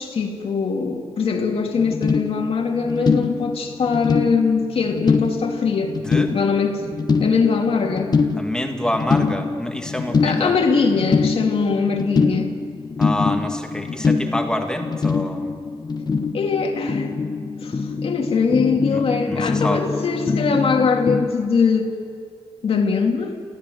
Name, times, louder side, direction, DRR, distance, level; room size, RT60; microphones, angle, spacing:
voice 1, 0.0-6.0 6.3-6.9 7.2-8.1 10.2-12.5 16.3-17.1 17.6-21.9 22.6-23.4, left 5 dB, 75° left, 3 dB, 2.4 m, -21 dB
sound 1, 1.7-21.3, left 4 dB, 45° left, 1.2 m, -24 dB
voice 2, 6.0-6.4 8.4-10.5 13.0-15.5 18.9-19.8, left 1 dB, 10° left, 3 dB, 2.0 m, -27 dB
29.0 x 15.5 x 7.7 m, 2.1 s
wide cardioid pair, 130°, 10 cm